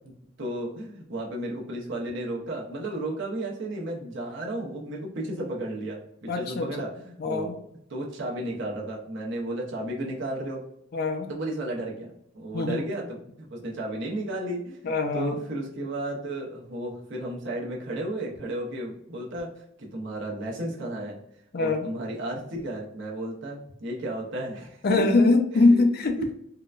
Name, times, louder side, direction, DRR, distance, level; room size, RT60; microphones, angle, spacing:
voice 1, 0.4-7.5 7.9-10.6 11.3-13.2 13.5-19.5 19.8-21.2 21.6-25.0 25.5-25.8 26.2-26.3, right 1 dB, 65° right, -2 dB, 0.8 m, -33 dB
voice 2, 6.3-6.7 7.2-7.6 10.9-11.3 12.5-12.8 14.8-15.4 21.5-21.9 24.8-26.2, left 3 dB, 50° left, 6 dB, 0.4 m, -22 dB
3.7 x 2.2 x 2.4 m, 0.76 s
head